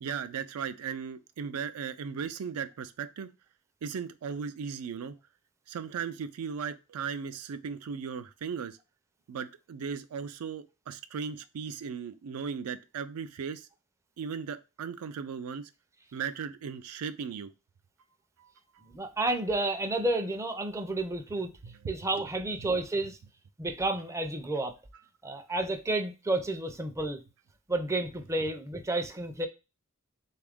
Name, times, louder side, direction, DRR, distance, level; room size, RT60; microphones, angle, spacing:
voice 1, 0.0-3.3 3.8-5.2 5.7-8.8 9.3-13.7 14.2-15.7 16.1-17.5 18.4-18.5 21.6-21.8, right 6 dB, 80° right, 0.4 m, -37 dB
voice 2, 18.8-21.5 21.9-23.2 23.6-24.7 25.2-27.2 27.7-29.5, right 2 dB, 15° right, 0.4 m, -31 dB
3.4 x 2.4 x 3.5 m
head